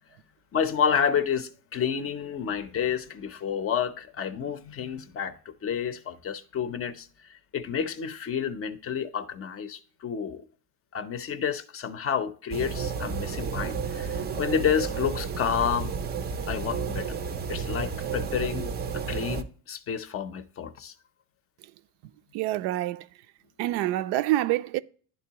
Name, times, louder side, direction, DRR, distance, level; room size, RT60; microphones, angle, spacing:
voice 1, 0.5-10.5 10.9-15.9 16.5-17.2 17.5-20.9, left 7 dB, 35° left, 0.5 m, -30 dB
sound 1, 12.5-19.4, right 6 dB, 25° right, 0.4 m, -32 dB
voice 2, 22.3-23.1 23.6-24.8, right 15 dB, 80° right, 0.5 m, -26 dB
11.0 x 3.8 x 2.8 m
cardioid pair, 145°, 39 cm